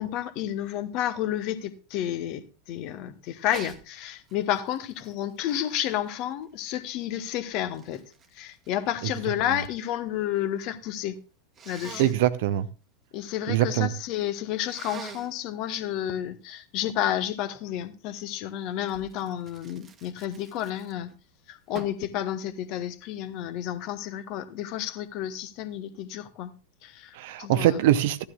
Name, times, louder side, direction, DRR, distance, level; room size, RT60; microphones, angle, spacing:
voice 1, 0.0-8.0 8.3-11.2 11.7-12.1 13.1-21.1 21.5-26.5 26.8-27.8, left 11 dB, 40° left, 1.1 m, -31 dB
Sneeze, 3.5-3.8 4.3-6.6 7.3-9.8 10.1-10.7 11.6-12.2 14.6-15.4 18.9-21.2 21.7-22.1, right 5 dB, 25° right, 1.3 m, -45 dB
voice 2, 12.0-12.7 13.5-13.9 27.1-28.2, right 13 dB, 50° right, 0.8 m, -23 dB
15.0 x 12.0 x 2.4 m
figure-of-eight pair, 90°, 0 cm